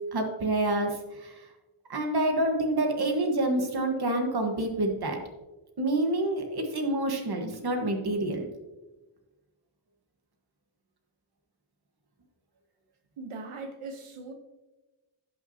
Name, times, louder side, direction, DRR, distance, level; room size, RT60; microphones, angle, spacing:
voice 1, 0.1-1.3 1.9-5.2 5.8-8.5, right 1 dB, 50° right, 3 dB, 1.4 m, -27 dB
voice 2, 13.2-14.3, right 3 dB, 80° right, 4 dB, 1.0 m, -40 dB
16.5 x 5.8 x 2.8 m, 1.1 s
wide cardioid pair, 180°, 50 cm